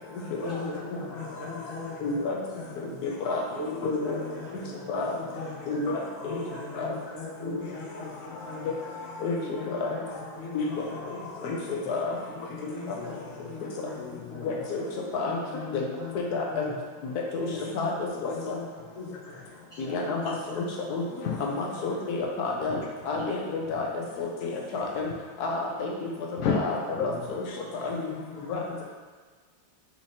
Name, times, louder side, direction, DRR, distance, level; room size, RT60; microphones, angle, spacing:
voice 1, 0.2-2.2 2.5-3.0 3.5-5.8 6.2-8.1 8.4-8.9 9.3-11.9 12.3-14.0 14.3-14.5 15.2-16.8 17.3-19.4 19.7-21.1 23.4-23.6 25.5-25.8 26.0-26.4 27.9-28.8, left 3 dB, 40° left, -14 dB, 1.4 m, -40 dB
voice 2, 2.0-2.4 3.3-3.4 3.8-4.2 4.9-5.1 5.7-6.4 6.8-6.9 8.6-8.7 9.2-9.4 9.7-9.9 10.5-11.2 11.4-11.6 11.9-12.1 14.4-14.8 15.1-15.4 15.7-15.9 16.3-16.7 17.0-17.5 17.7-17.9 18.2-18.6 19.8-21.0 21.4-22.8 23.1-23.9 24.2-25.1 25.4-25.9 26.5-26.8 27.0-27.4 27.8-28.0 28.5-28.8, left 3 dB, 65° left, -1 dB, 1.1 m, -30 dB
voice 3, 13.0-13.6 14.0-14.7 16.7-16.8 17.5-17.6 18.8-18.9 19.2-20.0 20.2-20.5 21.2-24.1 26.4-27.8, left 5 dB, 80° left, -2 dB, 0.7 m, -36 dB
4.3 x 3.0 x 4.1 m, 1.5 s
omnidirectional pair, 2.2 m